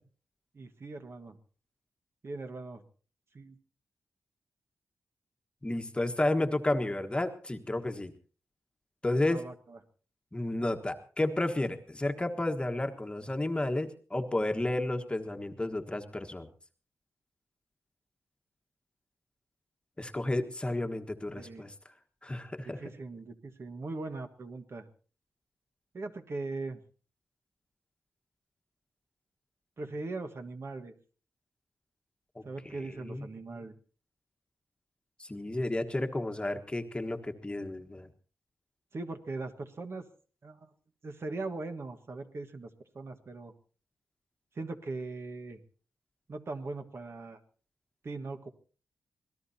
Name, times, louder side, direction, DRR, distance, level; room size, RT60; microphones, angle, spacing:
voice 1, 0.5-1.4 2.2-2.8 3.3-3.5 9.3-9.8 21.4-21.6 22.6-24.9 25.9-26.8 29.8-30.9 32.4-33.7 38.9-40.1 40.4-40.7 41.0-42.7 42.9-43.5 44.5-45.6 46.3-47.4 48.0-48.5, right 3 dB, 50° right, 7 dB, 1.5 m, -40 dB
voice 2, 5.6-8.1 9.0-9.4 10.3-16.5 20.0-21.7 22.2-22.8 32.3-32.4 33.0-33.2 35.2-38.1, left 1 dB, 15° left, 5 dB, 1.4 m, -32 dB
25.5 x 18.0 x 2.8 m, 0.40 s
wide cardioid pair, 100°, 6 cm